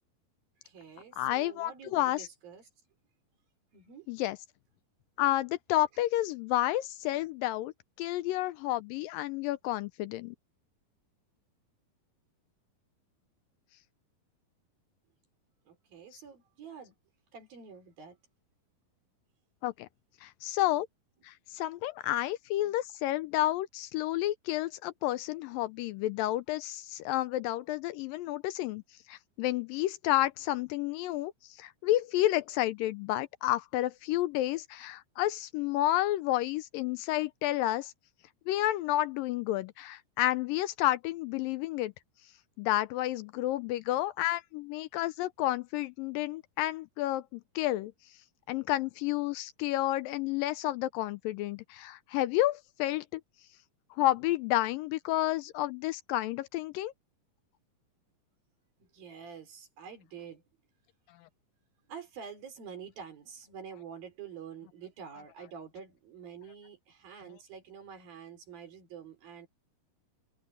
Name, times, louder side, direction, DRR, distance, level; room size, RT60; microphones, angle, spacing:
voice 1, 0.6-2.7 3.7-4.1 15.7-16.9 17.3-18.2 58.8-60.4 61.9-69.5, right 7 dB, 70° right, 5.8 m, -47 dB
voice 2, 1.2-2.3 4.1-4.4 5.2-7.7 8.0-10.4 19.6-19.9 20.2-20.9 21.2-28.8 29.1-37.9 38.5-41.9 42.6-47.9 48.5-53.2 54.0-56.9, left 15 dB, 80° left, 2.2 m, -30 dB
omnidirectional pair, 4.3 m